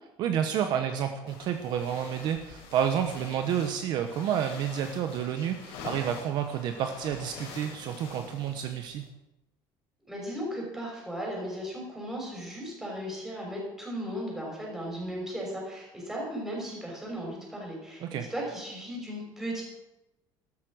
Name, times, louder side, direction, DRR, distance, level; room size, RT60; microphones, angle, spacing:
voice 1, 0.2-9.0 18.0-18.2, right 9 dB, 50° right, 6 dB, 1.0 m, -30 dB
sound 1, 1.3-9.1, left 4 dB, 90° left, 5.0 m, -45 dB
voice 2, 10.0-19.6, equal, 5° right, -3 dB, 6.0 m, -36 dB
13.0 x 13.0 x 6.3 m, 0.96 s
cardioid pair, 165°, 9 cm